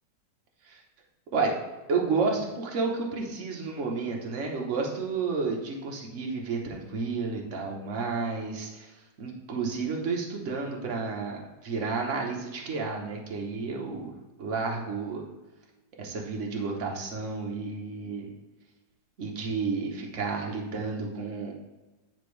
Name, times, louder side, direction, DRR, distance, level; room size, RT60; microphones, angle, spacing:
voice 1, 1.9-8.9 9.2-14.1 14.4-15.2 16.0-18.3 19.2-21.5, right 4 dB, 50° right, 0 dB, 1.2 m, -31 dB
8.9 x 4.3 x 3.2 m, 1.1 s
omnidirectional pair, 1.9 m